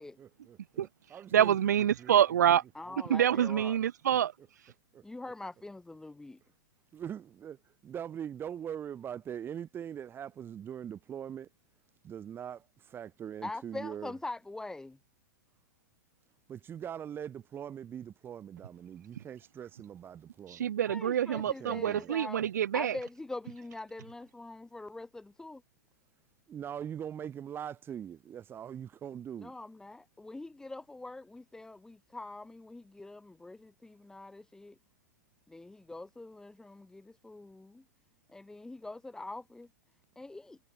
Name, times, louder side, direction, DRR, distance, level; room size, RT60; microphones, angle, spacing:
voice 1, 0.0-2.1 2.9-3.0 4.9-5.0 6.9-7.6 7.8-11.5 12.0-14.1 16.5-20.7 21.6-22.1 26.5-29.5, right 9 dB, 20° right, 2.8 m, -42 dB
voice 2, 1.3-2.6 3.1-4.3 4.6-4.7 20.5-22.9, right 10 dB, 70° right, 0.6 m, -26 dB
voice 3, 2.7-3.8 5.0-6.4 13.4-15.0 20.9-22.4 22.7-25.6 29.4-34.7 35.5-37.8 38.3-39.7 40.2-40.6, left 2 dB, 5° left, 2.7 m, -43 dB
hypercardioid pair, 110°, 10 cm